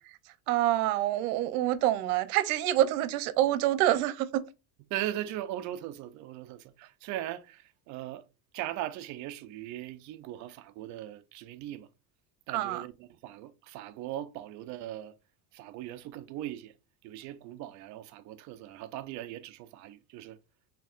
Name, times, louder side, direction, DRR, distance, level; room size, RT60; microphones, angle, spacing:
voice 1, 0.5-4.4 12.5-12.9, right 13 dB, 85° right, 0.7 m, -26 dB
voice 2, 4.9-8.3 8.5-11.9 12.5-15.2 15.5-16.7 17.0-20.4, right 13 dB, 45° right, 0.4 m, -39 dB
4.5 x 3.5 x 2.4 m
cardioid pair, 160°, 43 cm